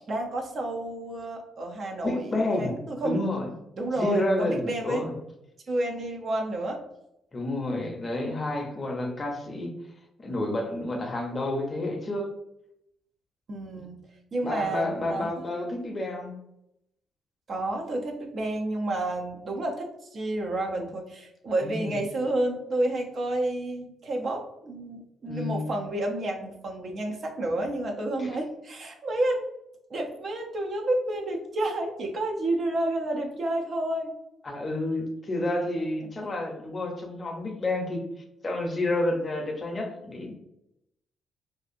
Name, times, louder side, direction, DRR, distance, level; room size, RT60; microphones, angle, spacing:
voice 1, 0.1-2.3 2.6-3.3 3.8-5.1 5.7-6.8 13.5-14.0 14.3-15.4 17.5-29.5 29.9-34.1 36.0-36.3, right 1 dB, 50° right, 1 dB, 0.5 m, -30 dB
voice 2, 2.0-2.8 3.0-3.5 4.0-5.1 7.3-9.7 10.2-12.3 13.7-13.8 14.4-16.3 21.6-22.0 25.3-25.7 28.2-28.4 34.4-38.0 38.4-40.3, left 1 dB, 30° left, 2 dB, 0.6 m, -30 dB
2.6 x 2.4 x 2.4 m, 0.83 s
cardioid pair, 90°, 0 cm